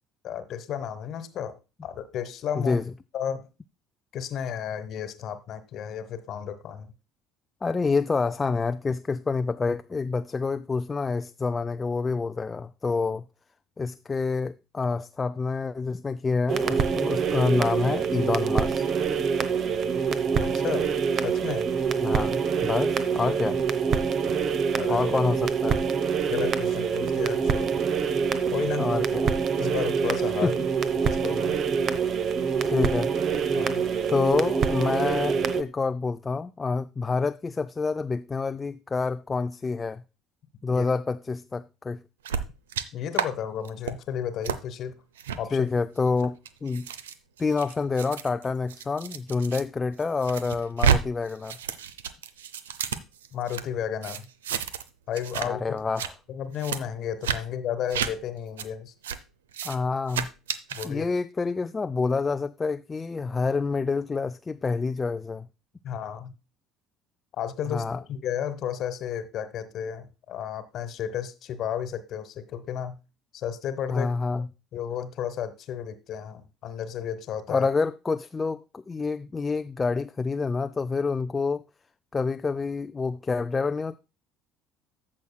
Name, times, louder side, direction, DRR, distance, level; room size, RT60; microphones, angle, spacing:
voice 1, 0.2-1.6 1.8-2.8 3.1-3.5 4.1-6.9 20.4-20.9 21.2-21.7 24.7-25.1 26.3-27.7 28.5-28.9 29.6-30.5 30.9-31.6 33.5-33.8 40.7-40.8 42.9-44.9 45.4-45.7 53.3-54.3 55.1-55.8 56.3-58.9 60.7-61.1 65.8-66.3 67.4-73.0 73.3-74.1 74.7-77.7, left 9 dB, 50° left, 1.2 m, -33 dB
voice 2, 7.6-13.2 13.8-18.8 22.0-23.6 24.9-25.8 28.8-29.3 30.4-30.5 32.7-33.1 34.1-40.0 40.6-42.0 45.5-46.9 47.4-51.6 55.4-56.1 59.6-60.3 60.8-65.5 67.7-68.0 73.9-74.5 77.5-81.6 82.1-84.0, left 4 dB, 25° left, 0.4 m, -27 dB
sound 1, 16.5-35.6, right 6 dB, 45° right, 0.9 m, -25 dB
sound 2, 42.3-42.9 43.1-43.3 43.7-43.9 44.4-44.6 45.2-45.4 46.1-49.6 50.0-51.0 51.3-53.6 54.0-54.9 55.1-55.5 55.8-56.1 56.6-56.8 57.2-57.4 57.9-58.1 58.6-58.7 59.0-59.2 59.5-59.8 60.1-60.9, right 8 dB, 75° right, 0.6 m, -30 dB
14.5 x 6.4 x 2.2 m
figure-of-eight pair, 60°, 0 cm